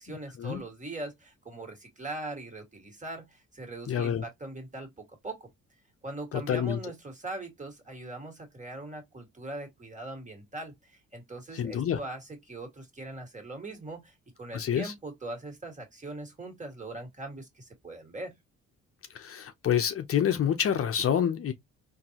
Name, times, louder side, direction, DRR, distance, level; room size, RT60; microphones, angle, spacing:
voice 1, 0.0-5.5 6.0-18.3, right 2 dB, 25° right, 1.8 m, -41 dB
voice 2, 3.9-4.2 6.3-6.8 11.5-12.0 14.5-14.9 19.1-21.5, left 9 dB, 50° left, 0.6 m, -27 dB
3.8 x 2.6 x 2.9 m
cardioid pair, 90°, 30 cm